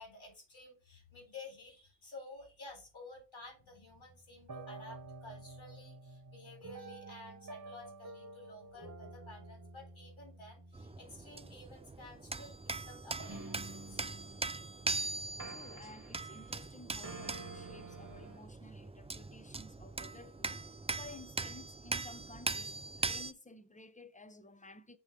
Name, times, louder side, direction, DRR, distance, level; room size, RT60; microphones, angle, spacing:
voice 1, 0.0-14.0, left 2 dB, 75° left, 3.9 m, -52 dB
sound 1, 3.7-15.0 15.4-16.7 17.0-18.4, right 3 dB, 40° right, 1.3 m, -50 dB
sound 2, 10.7-23.3, right 3 dB, 15° right, 0.3 m, -41 dB
voice 2, 15.5-25.0, left 2 dB, 15° left, 0.7 m, -54 dB
6.8 x 3.2 x 5.9 m
wide cardioid pair, 80°, 48 cm